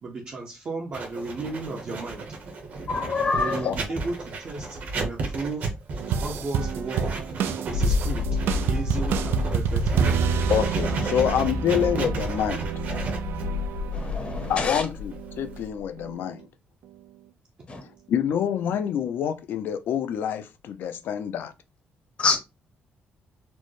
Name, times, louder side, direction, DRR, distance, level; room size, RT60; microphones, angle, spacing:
voice 1, 0.0-2.2 3.4-5.7 6.2-7.1 7.6-8.3 8.6-10.2 10.9-11.2, right 3 dB, 35° right, 0.6 m, -34 dB
Writing, 0.9-15.7, right 3 dB, 50° right, 0.9 m, -34 dB
voice 2, 2.9-3.7 13.9-14.9 17.7-17.8 22.2-22.4, left 4 dB, 30° left, 0.7 m, -26 dB
sound 1, 6.0-14.8 15.1-15.6 16.0-16.4 16.8-16.9, right 7 dB, 90° right, 0.3 m, -29 dB
sound 2, 7.7-15.8, left 3 dB, 85° left, 1.1 m, -30 dB
voice 3, 10.5-12.7 14.5-16.4 18.1-21.5, left 9 dB, 65° left, 0.4 m, -26 dB
4.3 x 2.1 x 3.1 m
cardioid pair, 180°, 4 cm